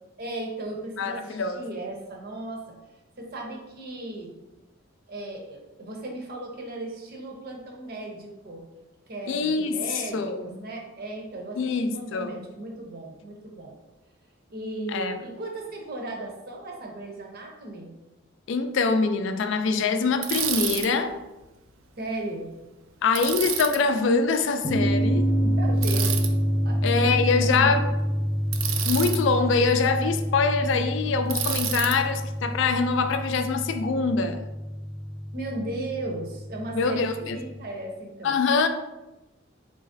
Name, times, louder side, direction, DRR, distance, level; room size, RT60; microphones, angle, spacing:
voice 1, 0.2-2.6 3.2-4.4 5.1-8.7 9.1-13.7 14.5-17.9 22.0-22.5 25.4-26.2 26.6-27.2 27.5-27.8 35.3-38.3, right 2 dB, 50° right, 1 dB, 0.8 m, -36 dB
voice 2, 1.0-1.6 9.3-9.8 10.1-10.6 11.6-12.3 14.9-15.1 18.5-21.1 23.0-25.3 26.8-27.9 28.8-34.5 36.7-37.4 38.2-38.7, left 4 dB, 65° left, 8 dB, 0.4 m, -24 dB
Bicycle, 20.2-20.9 23.1-23.8 25.8-26.3 28.5-29.2 31.3-32.0, right 8 dB, 85° right, 0.4 m, -29 dB
sound 1, 24.6-37.6, equal, 35° left, 0.8 m, -27 dB
4.0 x 3.8 x 2.6 m, 1.0 s
head